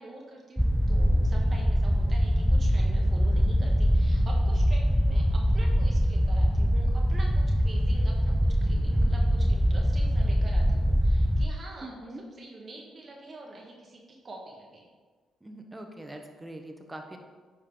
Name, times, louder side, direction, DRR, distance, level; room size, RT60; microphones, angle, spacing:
voice 1, 0.0-14.9, right 2 dB, 45° right, -1 dB, 1.4 m, -46 dB
sound 1, 0.6-11.5, equal, ahead, 0.5 m, -23 dB
voice 2, 11.8-12.2 15.4-17.2, right 1 dB, 15° right, 3 dB, 1.2 m, -42 dB
9.8 x 4.6 x 3.8 m, 1.5 s
supercardioid pair, 65°, 0 cm